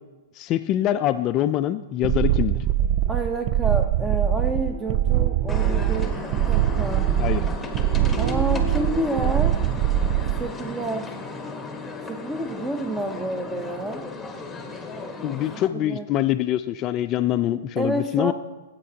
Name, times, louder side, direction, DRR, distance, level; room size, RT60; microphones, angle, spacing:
voice 1, 0.4-2.6 7.2-7.4 15.2-18.3, left 12 dB, 35° left, 10 dB, 0.4 m, -24 dB
sound 1, 2.0-10.5, right 12 dB, 40° right, 0.3 m, -22 dB
voice 2, 3.1-7.1 8.2-9.6 10.4-11.1 12.1-14.1 15.5-16.1 17.8-18.3, right 1 dB, 15° right, 7 dB, 0.9 m, -29 dB
sound 2, 4.3-9.6, right 3 dB, 60° right, 1.3 m, -37 dB
sound 3, 5.5-15.7, left 3 dB, 10° left, 1.2 m, -35 dB
15.0 x 8.3 x 2.9 m, 1.2 s
hypercardioid pair, 125°, 0 cm